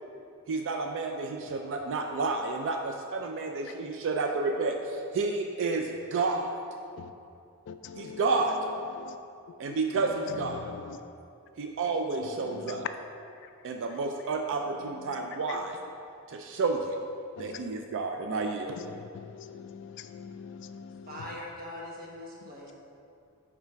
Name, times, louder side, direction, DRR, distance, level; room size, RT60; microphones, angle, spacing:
voice 1, 0.5-6.5 8.0-8.5 9.6-10.7 11.6-12.8 13.6-15.8 16.3-16.8 17.4-18.7, right 3 dB, 60° right, 3 dB, 0.4 m, -30 dB
voice 2, 7.7-9.2 9.7-9.8 10.0-11.0 12.2-12.9 14.5-15.6 17.4-17.8 18.7-21.4 22.4-22.7, left 7 dB, 55° left, 9 dB, 0.3 m, -43 dB
voice 3, 21.1-22.7, left 1 dB, 40° right, -3 dB, 1.2 m, -41 dB
5.6 x 5.0 x 4.5 m, 2.6 s
head